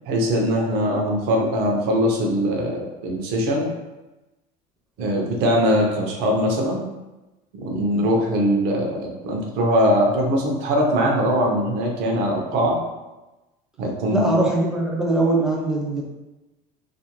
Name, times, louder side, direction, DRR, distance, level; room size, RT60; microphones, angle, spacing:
voice 1, 0.1-3.7 5.0-6.9 7.6-12.8 13.8-14.4, equal, 65° right, 0 dB, 0.7 m, -21 dB
voice 2, 14.1-16.0, right 2 dB, 5° right, -3 dB, 0.5 m, -21 dB
2.5 x 2.5 x 2.9 m, 1.1 s
cardioid pair, 150°, 18 cm